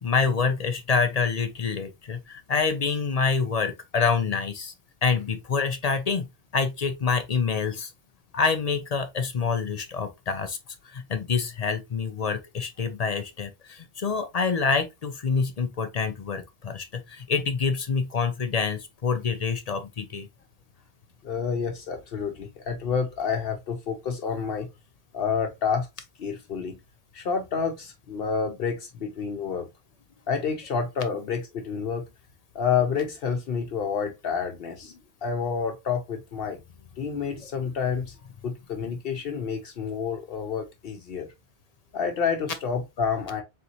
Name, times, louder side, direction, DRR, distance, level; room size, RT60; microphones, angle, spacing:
voice 1, 0.0-4.7 5.0-6.3 6.5-7.9 8.3-10.6 10.9-20.3, left 5 dB, 50° left, 0.5 m, -26 dB
voice 2, 21.2-24.7 25.1-25.9 26.2-26.8 27.1-29.7 30.3-32.1 32.5-36.6 37.0-38.1 38.4-41.3 41.9-43.4, left 6 dB, 70° left, 0.9 m, -29 dB
4.0 x 3.4 x 2.7 m
omnidirectional pair, 1.0 m